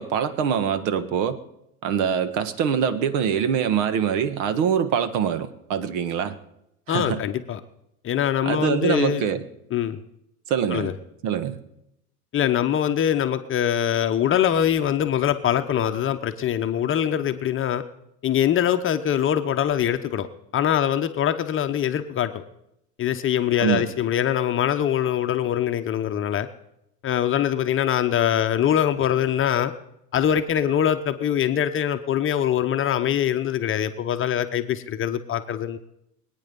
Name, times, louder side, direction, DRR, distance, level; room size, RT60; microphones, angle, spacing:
voice 1, 0.0-1.4 1.8-6.4 6.9-7.2 8.4-9.4 10.5-10.9 11.2-11.6 23.6-23.9, right 8 dB, 55° right, 12 dB, 1.6 m, -24 dB
voice 2, 6.9-7.6 8.0-9.2 9.7-10.0 10.7-10.9 12.3-17.8 18.2-20.3 20.5-22.4 23.0-26.5 27.0-29.7 30.1-35.8, left 10 dB, 25° left, 8 dB, 0.9 m, -23 dB
22.5 x 9.3 x 5.4 m, 0.82 s
hypercardioid pair, 100°, 46 cm